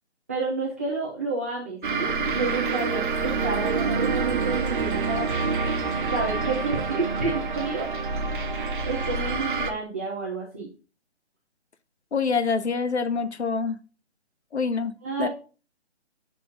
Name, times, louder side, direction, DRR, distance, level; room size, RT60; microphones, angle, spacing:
voice 1, 0.3-5.3 6.1-7.9 8.8-10.7 15.0-15.3, right 3 dB, 15° right, -6 dB, 0.5 m, -30 dB
sound 1, 1.8-9.7, right 4 dB, 45° right, 0.8 m, -27 dB
voice 2, 12.1-13.8 14.5-14.9 15.2-15.3, left 5 dB, 70° left, 12 dB, 0.8 m, -25 dB
6.9 x 5.8 x 2.5 m, 0.35 s
figure-of-eight pair, 145°, 34 cm